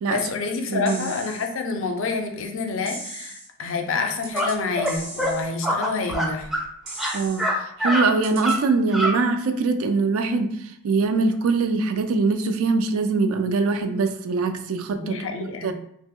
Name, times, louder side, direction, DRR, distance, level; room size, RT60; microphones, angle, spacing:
voice 1, 0.1-6.5 14.9-15.7, left 4 dB, 65° left, 4 dB, 0.5 m, -28 dB
voice 2, 0.7-1.1 7.1-7.5 7.8-15.2 15.6-15.7, right 4 dB, 80° right, 7 dB, 0.4 m, -23 dB
sound 1, 0.9-1.5 2.9-3.5 4.2-4.6 4.9-5.5 6.9-7.5 8.2-8.6, right 2 dB, 60° right, 0.9 m, -37 dB
sound 2, 4.3-4.5 4.8-4.9 5.2-5.3 5.6-6.7 6.9-7.5 7.8-8.0 8.4-8.6 8.9-9.1, equal, ahead, 0.4 m, -24 dB
2.9 x 2.0 x 3.6 m, 0.70 s
head